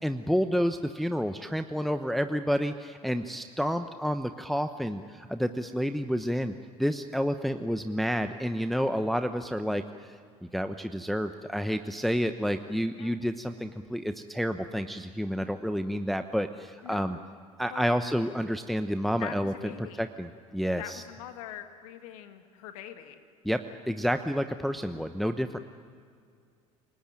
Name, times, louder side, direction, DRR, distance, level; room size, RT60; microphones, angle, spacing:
voice 1, 0.0-6.5 6.8-10.2 10.5-17.2 17.6-21.0 23.4-25.6, equal, ahead, 8 dB, 1.0 m, -29 dB
voice 2, 16.8-17.3 17.7-18.0 19.2-20.1 20.8-23.2, left 12 dB, 70° left, 8 dB, 1.9 m, -43 dB
28.5 x 19.0 x 9.0 m, 2.2 s
hypercardioid pair, 65°, 19 cm